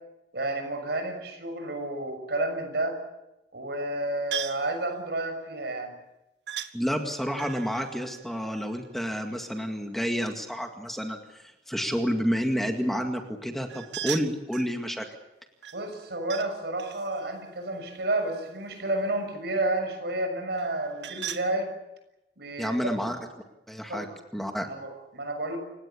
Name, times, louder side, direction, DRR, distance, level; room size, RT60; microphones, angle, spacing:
voice 1, 0.3-3.0 3.5-6.0 15.7-21.7 22.4-23.0 23.9-24.1 24.6-25.6, right 2 dB, 70° right, 6 dB, 6.7 m, -31 dB
sound 1, 4.3-4.7 6.5-6.7 7.3-9.2 13.7-14.7 15.6-16.5 16.8-18.7 20.5-21.5, right 10 dB, 90° right, 1.7 m, -38 dB
voice 2, 6.7-15.1 22.6-23.2 23.7-24.1 24.3-24.7, equal, ahead, 4 dB, 2.1 m, -30 dB
29.5 x 17.5 x 8.6 m, 0.94 s
head